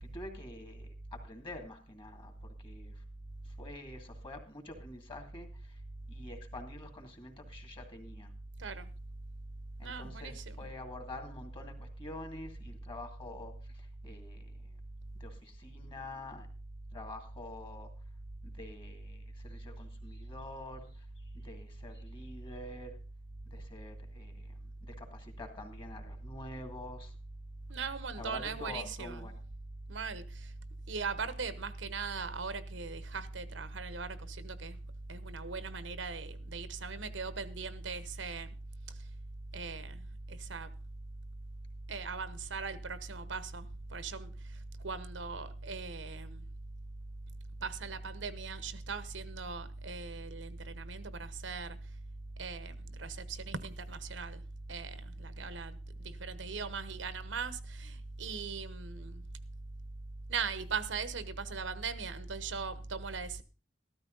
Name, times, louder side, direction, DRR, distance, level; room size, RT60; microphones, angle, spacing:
voice 1, 0.0-3.0 3.4-5.8 6.1-8.3 9.8-14.8 15.2-16.5 16.9-17.9 18.4-21.1 21.3-23.0 23.5-27.2 28.2-29.4, left 2 dB, 30° left, 2.5 m, -47 dB
voice 2, 9.8-10.7 27.7-29.3 29.9-30.5 30.9-34.8 35.1-38.5 39.5-40.0 40.3-40.7 41.9-44.3 44.8-46.4 47.6-51.8 52.4-54.4 54.7-59.2 60.3-63.4, right 4 dB, 80° right, 1.0 m, -39 dB
13.5 x 13.0 x 3.9 m
head